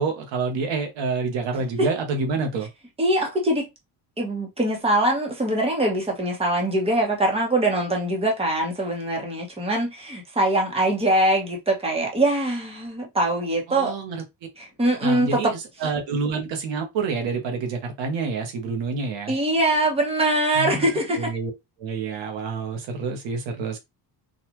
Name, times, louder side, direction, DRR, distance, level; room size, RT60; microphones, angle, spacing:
voice 1, 0.0-2.7 13.7-14.2 15.0-19.3 20.5-20.9 21.1-21.5 21.8-23.8, right 4 dB, 85° right, 1.3 m, -28 dB
voice 2, 3.0-3.7 4.2-13.9 14.6-15.5 19.3-21.3, right 1 dB, 15° right, 1.1 m, -23 dB
3.9 x 2.5 x 3.0 m
cardioid pair, 140°, 43 cm